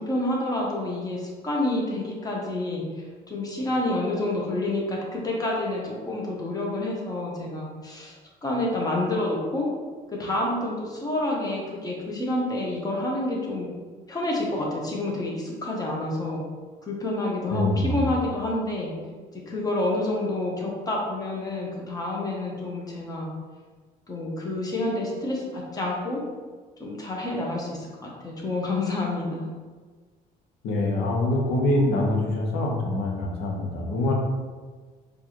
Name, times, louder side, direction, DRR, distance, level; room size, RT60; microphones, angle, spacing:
voice 1, 0.0-2.8 3.3-8.1 8.4-9.7 10.1-13.7 14.1-16.4 16.8-18.9 19.3-23.3 24.1-26.2 26.8-29.5, left 2 dB, 20° left, -2 dB, 0.9 m, -28 dB
voice 2, 17.5-18.1 30.6-34.1, left 1 dB, 85° left, -1 dB, 0.9 m, -24 dB
4.5 x 2.5 x 2.9 m, 1.4 s
cardioid pair, 110°, 17 cm